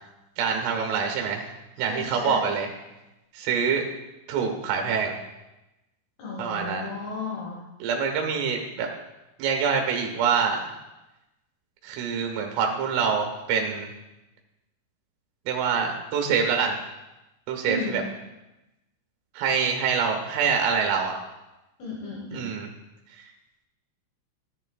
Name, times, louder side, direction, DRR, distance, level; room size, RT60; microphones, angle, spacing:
voice 1, 0.4-1.5 1.8-2.7 3.3-3.8 4.3-5.2 6.4-6.9 7.8-8.9 9.4-10.7 11.8-13.9 15.5-16.8 17.5-18.0 19.4-21.1 22.3-22.7, right 6 dB, 75° right, 3 dB, 3.8 m, -25 dB
voice 2, 1.8-2.5 6.2-7.6 17.6-18.1 21.8-22.5, left 3 dB, 65° left, -3 dB, 2.9 m, -34 dB
13.0 x 10.5 x 2.4 m, 0.97 s
omnidirectional pair, 5.9 m